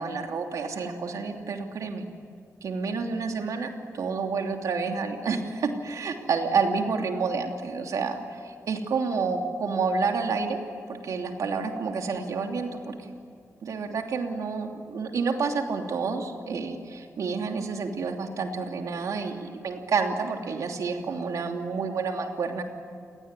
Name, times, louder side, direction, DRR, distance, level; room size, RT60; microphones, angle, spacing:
voice 1, 0.0-2.0 2.6-3.7 3.9-10.6 10.9-13.1 13.6-22.6, right 4 dB, 80° right, 3 dB, 3.0 m, -29 dB
29.5 x 18.5 x 9.7 m, 2.4 s
wide cardioid pair, 135°, 6 cm